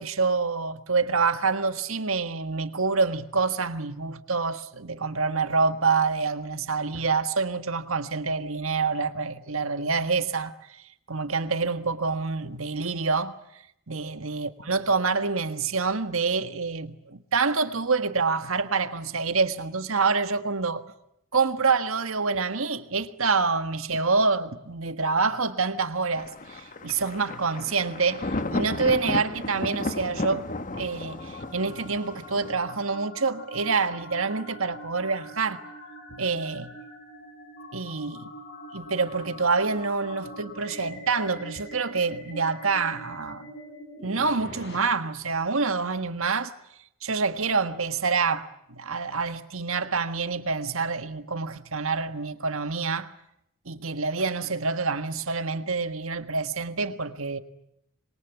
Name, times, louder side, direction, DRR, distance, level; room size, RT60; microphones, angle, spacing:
voice 1, 0.0-10.8 11.1-13.3 13.9-20.8 21.3-30.4 30.7-35.6 36.1-36.7 37.7-38.3 38.7-43.5 44.0-46.5 47.0-53.1 53.6-57.4, right 4 dB, 70° right, 1.7 m, -27 dB
Thunder, 26.1-32.5, left 2 dB, 40° left, 1.3 m, -33 dB
sound 1, 29.7-44.8, equal, 55° left, 7.2 m, -44 dB
27.0 x 22.5 x 9.3 m
head